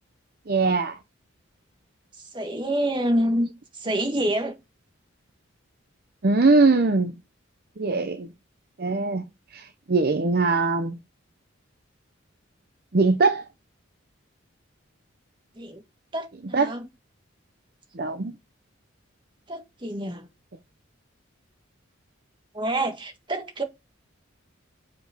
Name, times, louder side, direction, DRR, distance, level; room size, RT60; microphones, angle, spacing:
voice 1, 0.5-1.0 6.2-7.1 7.8-8.3 8.8-9.3 9.5-11.0 12.9-13.5 16.5-16.7 17.9-18.3, right 3 dB, 50° right, 0.7 m, -21 dB
voice 2, 2.2-4.5 15.6-15.8 16.1-16.9 19.5-20.3 22.5-23.6, right 1 dB, 25° right, 1.6 m, -27 dB
7.0 x 5.2 x 5.0 m
head